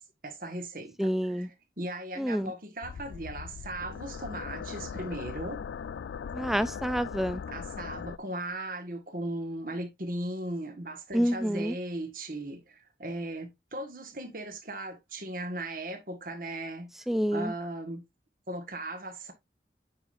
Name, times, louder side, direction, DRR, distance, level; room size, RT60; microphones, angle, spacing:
voice 1, 0.2-1.5 1.8-5.6 7.5-16.9 17.3-18.0 18.5-19.3, right 1 dB, 50° right, 1.7 m, -37 dB
voice 2, 1.0-1.5 2.2-2.5 6.3-7.4 11.1-11.8 17.1-17.5, equal, ahead, 0.4 m, -28 dB
sound 1, 2.8-8.2, left 6 dB, 85° left, 0.3 m, -39 dB
9.0 x 5.2 x 2.6 m
head